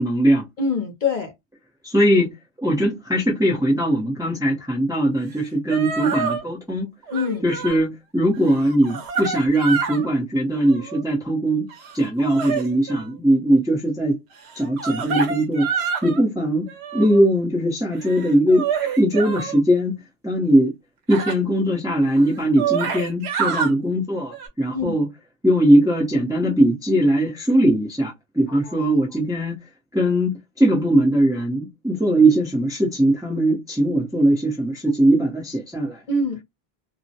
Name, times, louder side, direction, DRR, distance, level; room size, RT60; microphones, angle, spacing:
voice 1, 0.0-0.4 1.8-2.3 2.6-6.9 7.4-11.7 11.9-14.1 14.6-18.7 19.0-20.7 21.1-25.1 25.4-29.6 29.9-36.0, right 1 dB, 5° right, 0.6 m, -20 dB
voice 2, 0.6-1.3 7.1-7.4 24.7-24.9 28.5-28.8 36.1-36.4, left 3 dB, 55° left, 0.7 m, -24 dB
sound 1, 5.4-5.5 5.7-6.4 7.1-7.8 8.3-10.1 10.5-11.0 11.7-13.1 14.5-16.2 16.7-17.2 17.9-19.6 21.1-21.3 22.0-22.1 22.4-23.7 24.3-24.5, right 6 dB, 85° right, 0.9 m, -27 dB
2.3 x 2.1 x 2.7 m
omnidirectional pair, 1.1 m